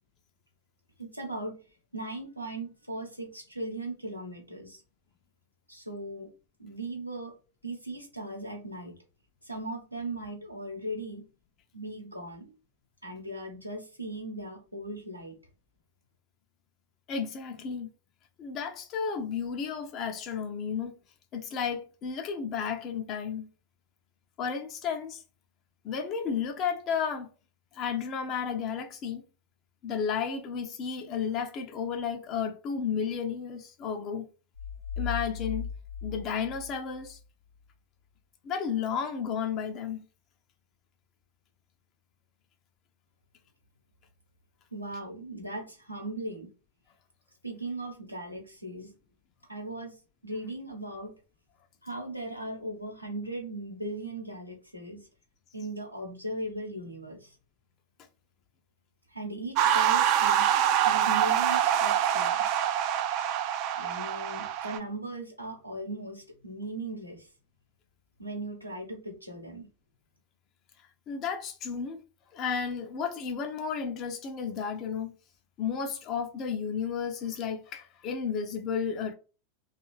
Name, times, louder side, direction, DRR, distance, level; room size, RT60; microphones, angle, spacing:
voice 1, 1.0-1.6 1.9-4.8 5.7-6.3 6.6-7.3 7.6-8.9 9.4-11.3 11.7-12.5 13.0-15.4 44.7-46.5 47.4-48.9 49.5-50.0 50.2-51.1 51.8-55.1 55.5-57.3 59.1-60.5 60.8-62.5 63.7-67.3 68.2-69.7, right 2 dB, 90° right, 0.9 m, -38 dB
voice 2, 17.1-17.9 18.4-20.9 21.3-23.5 24.4-25.2 25.8-27.3 27.7-29.2 29.8-34.3 35.0-35.7 36.0-37.2 38.4-40.0 71.1-72.0 72.3-75.1 75.6-79.2, left 6 dB, 35° left, 0.4 m, -32 dB
sound 1, 34.5-37.2, left 7 dB, 85° left, 0.7 m, -37 dB
sound 2, 59.6-64.8, right 10 dB, 40° right, 0.3 m, -25 dB
2.6 x 2.3 x 3.1 m
figure-of-eight pair, 90°, 0 cm